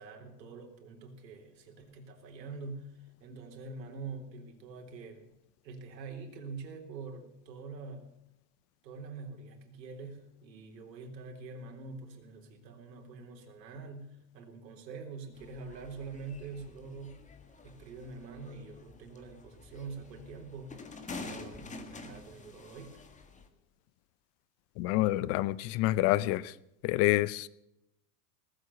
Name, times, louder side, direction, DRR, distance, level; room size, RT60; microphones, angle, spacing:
voice 1, 0.0-2.9 3.2-5.3 5.6-8.2 8.8-17.3 17.6-20.8 21.2-23.0, right 4 dB, 85° right, 3 dB, 3.8 m, -45 dB
sound 1, 15.3-23.5, left 3 dB, 15° left, 1.7 m, -48 dB
voice 2, 24.8-26.5 26.8-27.5, left 16 dB, 30° left, 20 dB, 0.5 m, -27 dB
19.0 x 8.1 x 8.2 m, 0.85 s
supercardioid pair, 135°, 49 cm